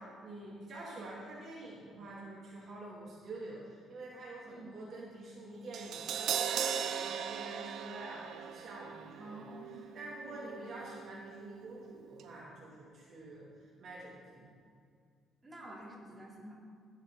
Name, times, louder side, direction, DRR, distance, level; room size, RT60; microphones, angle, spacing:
voice 1, 0.0-9.5 9.9-14.6, right 2 dB, 50° right, -5 dB, 2.3 m, -47 dB
Crash cymbal, 5.7-11.9 12.2-12.3, right 8 dB, 70° right, 0.6 m, -39 dB
voice 2, 9.2-9.8 10.2-10.8 15.4-16.5, right 1 dB, 20° right, -5 dB, 3.0 m, -49 dB
15.5 x 7.3 x 3.8 m, 2.2 s
cardioid pair, 115°, 0 cm